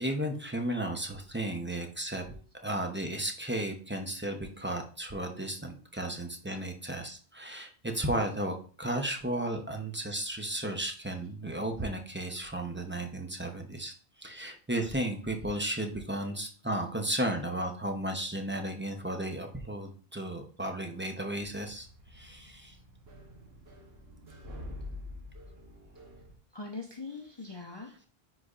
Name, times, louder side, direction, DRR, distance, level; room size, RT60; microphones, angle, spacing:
voice 1, 0.0-13.9 14.2-21.9 22.1-22.7, right 1 dB, 10° right, 3 dB, 0.7 m, -34 dB
sound 1, 21.4-26.4, left 1 dB, 70° right, 1.3 m, -47 dB
voice 2, 26.5-28.1, left 3 dB, 30° left, 0 dB, 0.7 m, -42 dB
9.8 x 4.1 x 2.5 m, 0.41 s
omnidirectional pair, 1.1 m